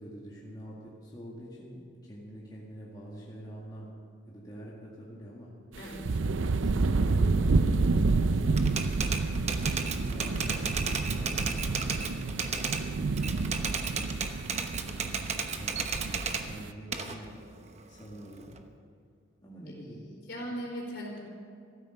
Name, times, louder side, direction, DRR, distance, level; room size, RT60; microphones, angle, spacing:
voice 1, 0.0-3.9 4.3-5.5 10.1-14.2 14.7-15.1 15.5-17.3 17.9-18.5 19.4-20.0, equal, 20° left, -5 dB, 2.0 m, -46 dB
voice 2, 5.7-6.2 19.6-21.2, equal, 60° left, -2 dB, 4.4 m, -40 dB
sound 1, 5.8-16.7, right 3 dB, 80° right, 0.5 m, -29 dB
Typewriter, 8.6-12.8 13.2-16.4 16.9-18.6, right 5 dB, 35° right, 0.9 m, -33 dB
14.5 x 13.0 x 6.5 m, 2.3 s
head